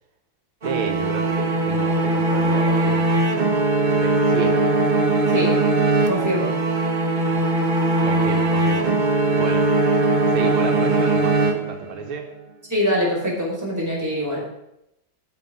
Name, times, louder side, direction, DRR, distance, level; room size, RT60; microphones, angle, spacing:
sound 1, 0.6-12.1, right 2 dB, 30° right, 1.1 m, -20 dB
voice 1, 0.6-3.2 3.9-4.7 8.0-8.9 9.4-9.7 10.3-12.3, right 5 dB, 85° right, 4 dB, 2.1 m, -31 dB
voice 2, 6.1-6.6 12.7-14.5, equal, 10° right, -4 dB, 4.4 m, -23 dB
14.0 x 6.4 x 5.5 m, 0.83 s
omnidirectional pair, 2.2 m